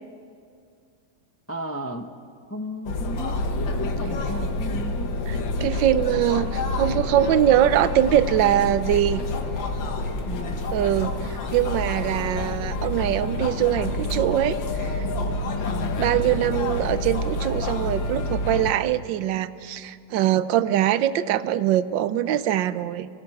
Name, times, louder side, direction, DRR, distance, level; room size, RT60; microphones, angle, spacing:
voice 1, 1.5-2.1 2.5-5.1 10.3-10.7 15.7-16.1, equal, 25° left, 6 dB, 0.3 m, -35 dB
sound 1, 2.9-18.7, left 2 dB, 85° left, 2.0 m, -28 dB
voice 2, 5.3-9.2 10.7-11.1 11.5-15.1 16.0-23.1, right 11 dB, 80° right, 14 dB, 1.4 m, -22 dB
25.5 x 17.0 x 7.7 m, 2.3 s
omnidirectional pair, 2.0 m